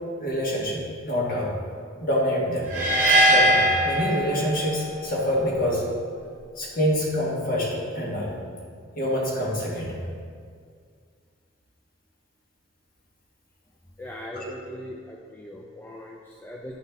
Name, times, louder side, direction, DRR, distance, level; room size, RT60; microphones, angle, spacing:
voice 1, 0.2-1.5 2.0-2.7 3.3-5.8 6.6-8.3 9.0-10.0 14.3-14.5, equal, 45° left, -4 dB, 1.5 m, -26 dB
sound 1, 2.7-4.8, equal, 40° right, 1.0 m, -20 dB
voice 2, 14.0-16.8, left 1 dB, 10° left, -2 dB, 0.3 m, -40 dB
10.0 x 4.1 x 3.5 m, 2.1 s
head